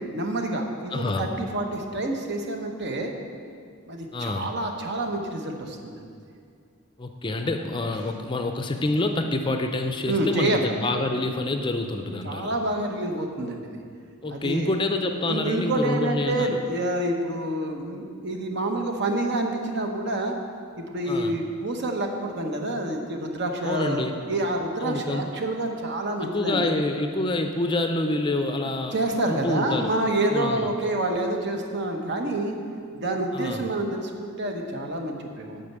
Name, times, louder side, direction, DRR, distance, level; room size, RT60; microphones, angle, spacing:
voice 1, 0.1-3.1 3.9-5.9 10.0-10.7 12.2-13.8 14.3-14.7 15.3-20.3 20.8-26.7 28.9-32.6 32.9-35.6, right 1 dB, 55° right, 3 dB, 1.0 m, -28 dB
voice 2, 0.9-1.2 4.1-4.5 7.0-12.5 14.2-16.6 21.1-21.4 23.6-24.2 24.8-25.3 26.2-29.0 29.3-29.9 30.3-30.7 33.3-33.7, left 2 dB, 25° left, 5 dB, 0.5 m, -27 dB
8.6 x 5.6 x 8.1 m, 2.3 s
head